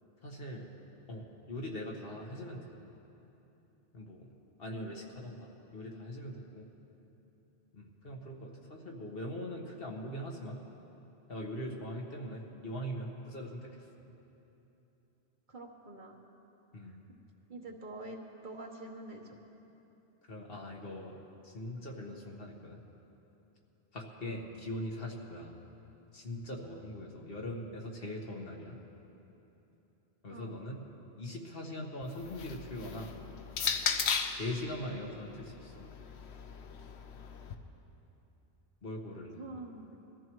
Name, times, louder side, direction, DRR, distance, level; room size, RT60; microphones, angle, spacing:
voice 1, 0.2-0.7 1.1-2.7 3.9-4.3 4.6-6.7 7.7-10.6 11.3-13.9 16.7-17.0 20.3-21.2 21.4-22.8 23.9-25.5 26.1-28.8 30.2-30.8 31.2-33.2 34.4-35.8 38.8-39.4, left 1 dB, 55° left, 0 dB, 1.7 m, -41 dB
voice 2, 15.5-16.2 16.9-17.0 17.5-18.2 18.4-19.4 24.2-24.4 30.3-30.5 39.4-40.1, right 2 dB, 45° right, 1 dB, 1.2 m, -46 dB
sound 1, 32.0-34.5 35.4-37.5, left 6 dB, 75° left, 1.0 m, -36 dB
22.5 x 14.0 x 3.1 m, 3.0 s
omnidirectional pair, 1.1 m